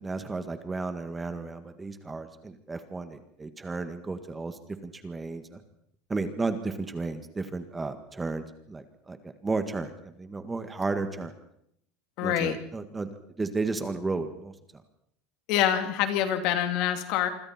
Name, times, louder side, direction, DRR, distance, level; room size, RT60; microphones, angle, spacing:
voice 1, 0.0-5.6 6.1-11.3 12.2-13.1 13.4-14.5, right 3 dB, 10° right, 9 dB, 1.8 m, -33 dB
voice 2, 12.2-12.6 15.5-17.3, left 10 dB, 55° left, 7 dB, 2.8 m, -26 dB
27.0 x 25.0 x 4.4 m, 0.72 s
supercardioid pair, 145°, 0 cm